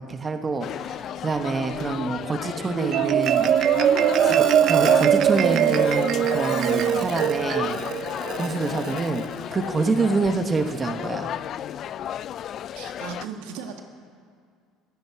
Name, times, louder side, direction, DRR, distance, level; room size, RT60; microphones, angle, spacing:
voice 1, 0.1-3.5 4.2-7.8 8.4-9.2 9.5-11.3, right 4 dB, 25° right, 6 dB, 1.2 m, -27 dB
sound 1, 0.6-13.2, left 10 dB, 50° left, 0.3 m, -33 dB
voice 2, 1.3-2.0 9.8-10.0 12.7-13.8, right 7 dB, 80° right, 4 dB, 1.5 m, -37 dB
Marimba xylophone, 2.6-9.2, right 9 dB, 55° right, 0.5 m, -21 dB
22.5 x 10.5 x 4.7 m, 2.1 s
supercardioid pair, 95°, 0 cm